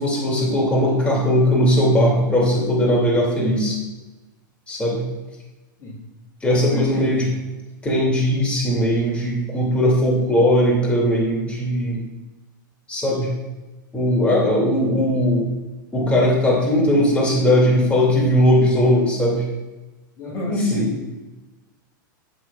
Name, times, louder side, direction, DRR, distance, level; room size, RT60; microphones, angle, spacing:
voice 1, 0.0-3.8 4.7-5.0 6.4-7.3 7.8-12.0 12.9-13.3 13.9-15.5 15.9-19.4 20.5-20.9, equal, 10° left, -4 dB, 2.6 m, -19 dB
voice 2, 6.7-7.3 20.2-21.0, left 3 dB, 30° left, -6 dB, 2.3 m, -30 dB
11.0 x 7.6 x 2.4 m, 1.1 s
hypercardioid pair, 120°, 11 cm